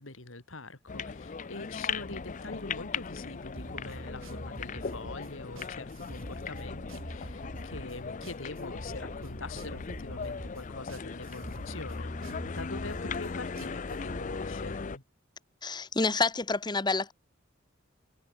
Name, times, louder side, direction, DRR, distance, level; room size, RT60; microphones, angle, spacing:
voice 1, 0.0-15.0, left 2 dB, 80° left, 3.3 m, -44 dB
sound 1, 0.9-15.0, left 5 dB, 40° left, 0.6 m, -38 dB
sound 2, 3.6-14.2, right 1 dB, 85° right, 6.8 m, -45 dB
voice 2, 15.6-17.1, left 3 dB, 20° left, 1.1 m, -28 dB
head